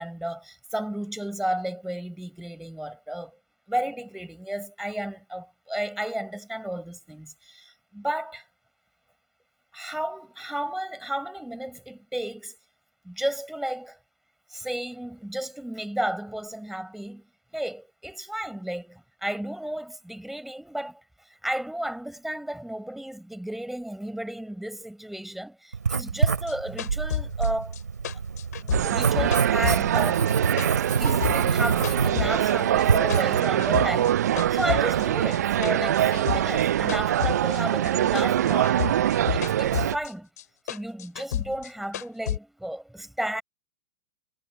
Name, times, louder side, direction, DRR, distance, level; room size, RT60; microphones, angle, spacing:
voice 1, 0.0-3.4 3.7-8.4 9.7-12.6 13.0-14.0 14.5-17.3 17.5-21.0 21.4-27.8 28.6-30.6 31.0-34.2 34.5-38.9 39.3-40.3 40.7-43.4, right 1 dB, ahead, 5.7 m, -33 dB
Writing, 25.7-33.4, right 5 dB, 90° right, 2.4 m, -27 dB
sound 1, 26.2-30.3 30.6-32.5 32.8-34.1 34.4-37.9 38.2-40.1 40.4-42.4, left 11 dB, 70° left, 2.9 m, -31 dB
sound 2, 28.7-40.0, right 11 dB, 70° right, 0.4 m, -24 dB
hypercardioid pair, 105°, 9 cm